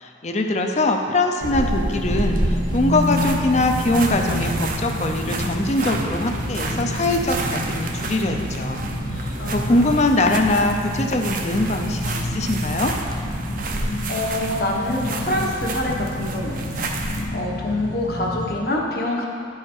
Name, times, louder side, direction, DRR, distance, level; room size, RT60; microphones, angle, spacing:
voice 1, 0.0-8.8 9.1-9.2 9.5-12.9, left 2 dB, 35° left, 4 dB, 0.6 m, -22 dB
sound 1, 1.4-17.3, right 2 dB, 45° right, 0.6 m, -29 dB
sound 2, 1.9-18.6, left 1 dB, 80° left, 1.0 m, -29 dB
voice 2, 9.4-10.0 14.1-16.7 17.3-19.3, left 1 dB, 55° left, -2 dB, 1.1 m, -26 dB
10.5 x 4.8 x 4.5 m, 2.3 s
head